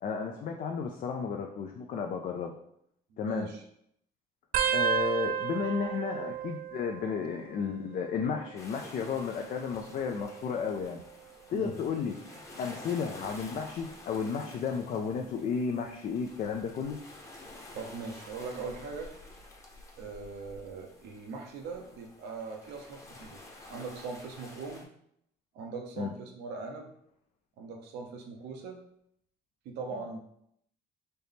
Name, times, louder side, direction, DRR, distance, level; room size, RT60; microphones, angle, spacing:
voice 1, 0.0-2.5 3.2-3.5 4.7-11.0 11.5-12.2 12.6-17.0 26.0-26.1, left 6 dB, 50° left, 2 dB, 0.5 m, -33 dB
voice 2, 3.1-3.6 11.5-11.7 17.7-19.1 20.0-23.4 23.7-24.9 25.5-26.9 27.6-28.8 29.6-30.2, right 4 dB, 85° right, 2 dB, 0.9 m, -40 dB
sound 1, 4.5-7.7 8.0-8.6 9.6-11.1 11.7-12.0 13.2-13.6 15.1-15.2, right 9 dB, 60° right, 0.4 m, -34 dB
sound 2, 8.6-24.8, left 2 dB, 15° left, 0.9 m, -50 dB
4.3 x 2.7 x 3.4 m, 0.71 s
cardioid pair, 110°, 17 cm